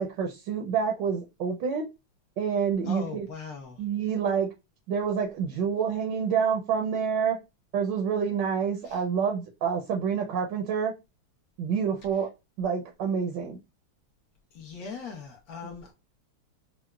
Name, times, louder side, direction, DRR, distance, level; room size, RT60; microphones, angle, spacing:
voice 1, 0.0-1.9 2.4-3.3 3.8-4.5 4.9-7.4 7.7-10.9 11.6-12.3 12.6-13.6, right 6 dB, 75° right, 1.1 m, -27 dB
voice 2, 2.8-3.8 8.8-9.0 14.5-15.9, left 4 dB, 75° left, 0.8 m, -39 dB
4.7 x 2.0 x 2.2 m
omnidirectional pair, 2.4 m